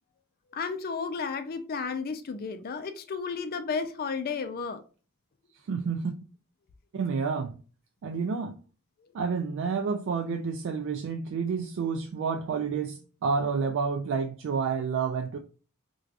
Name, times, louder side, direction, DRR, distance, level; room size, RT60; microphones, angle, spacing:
voice 1, 0.5-4.8, left 5 dB, 45° left, 0.4 m, -33 dB
voice 2, 5.7-6.1 6.9-7.5 8.0-8.5 9.1-15.4, right 5 dB, 60° right, 0.3 m, -29 dB
4.6 x 2.3 x 2.4 m
head